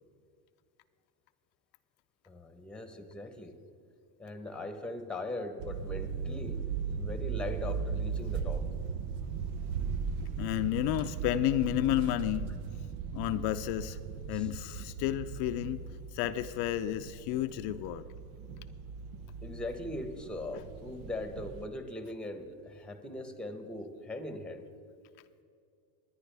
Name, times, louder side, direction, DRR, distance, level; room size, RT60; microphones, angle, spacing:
voice 1, 2.3-3.5 4.2-6.6 7.0-8.7 14.3-14.5 19.4-24.7, left 2 dB, ahead, 7 dB, 0.9 m, -40 dB
sound 1, 5.6-21.6, right 6 dB, 75° right, 0.9 m, -38 dB
voice 2, 10.4-12.5 13.1-14.0 14.3-15.8 16.1-18.0 20.6-20.7, left 14 dB, 65° left, 9 dB, 0.5 m, -31 dB
20.0 x 9.8 x 3.4 m, 2.4 s
cardioid pair, 130°, 44 cm